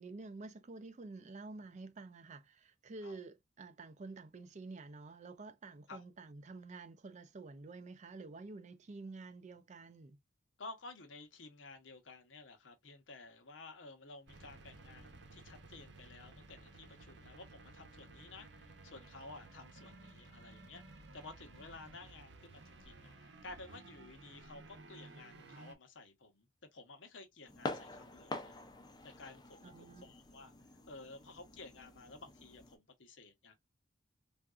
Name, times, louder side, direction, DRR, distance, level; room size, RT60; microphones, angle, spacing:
voice 1, 0.0-10.2 29.6-30.1, right 3 dB, 40° right, 0.4 m, -49 dB
voice 2, 10.6-28.6 29.0-30.5 30.9-33.5, left 3 dB, 85° left, 0.9 m, -53 dB
sound 1, 14.3-25.7, right 2 dB, 70° right, 0.8 m, -56 dB
sound 2, 27.5-32.8, left 2 dB, 20° left, 0.5 m, -47 dB
3.5 x 2.5 x 2.3 m
head